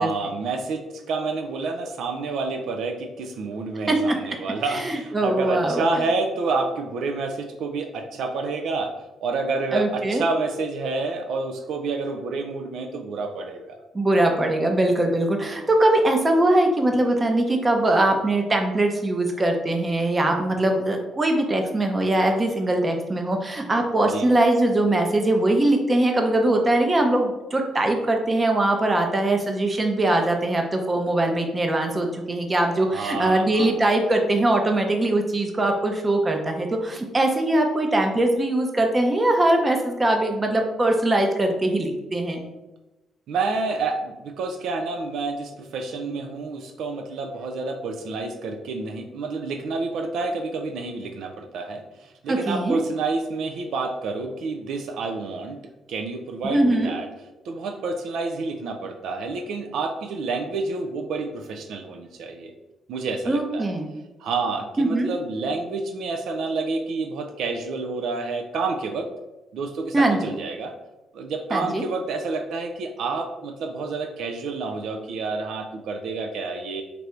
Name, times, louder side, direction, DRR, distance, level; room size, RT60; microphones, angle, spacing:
voice 1, 0.0-8.9 9.2-13.8 24.1-24.3 32.9-33.7 43.3-55.6 55.9-57.1 57.4-62.5 62.9-63.7 64.2-69.1 69.5-70.7 71.1-76.8, right 3 dB, 75° right, 4 dB, 0.4 m, -29 dB
voice 2, 4.7-5.8 9.7-10.2 13.9-42.4 46.1-46.2 52.3-52.8 56.5-56.9 63.3-63.9 64.8-65.1 69.9-70.3 71.5-71.8, right 1 dB, 25° right, 3 dB, 0.7 m, -21 dB
3.3 x 2.5 x 4.3 m, 1.0 s
cardioid pair, 90°, 0 cm